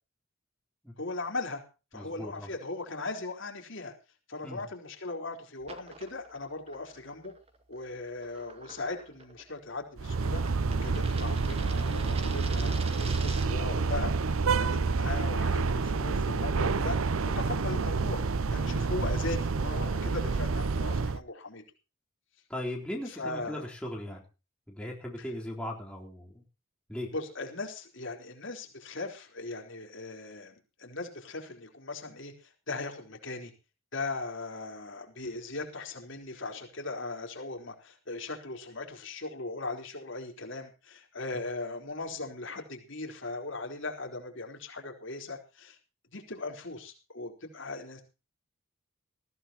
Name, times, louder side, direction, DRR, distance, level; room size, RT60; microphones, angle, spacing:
voice 1, 1.0-1.6 1.9-3.9 4.3-7.3 7.7-10.4 10.8-17.0 17.3-18.2 18.5-21.6 23.1-23.7 25.2-25.3 27.1-33.5 33.9-45.8 46.1-48.0, left 3 dB, 60° left, 3 dB, 4.1 m, -38 dB
voice 2, 1.9-2.5 4.4-4.6 22.5-24.2 24.7-26.4 26.9-27.1, left 1 dB, 5° left, -2 dB, 3.9 m, -38 dB
sound 1, 5.6-13.7, right 4 dB, 30° right, 2.0 m, -47 dB
sound 2, 10.0-21.2, right 4 dB, 80° right, 0.7 m, -28 dB
19.5 x 15.5 x 3.0 m, 0.32 s
head